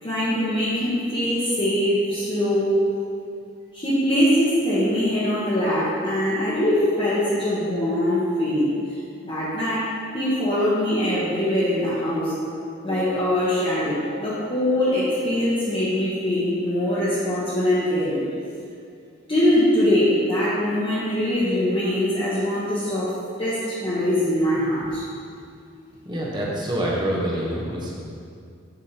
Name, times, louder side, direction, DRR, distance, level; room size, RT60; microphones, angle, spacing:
voice 1, 0.0-2.7 3.7-8.7 9.2-12.3 12.8-18.2 19.3-23.1 23.4-25.0, left 1 dB, 30° left, -11 dB, 1.2 m, -22 dB
voice 2, 26.0-27.9, right 1 dB, 25° right, -4 dB, 1.1 m, -26 dB
7.1 x 6.7 x 3.0 m, 2.4 s
head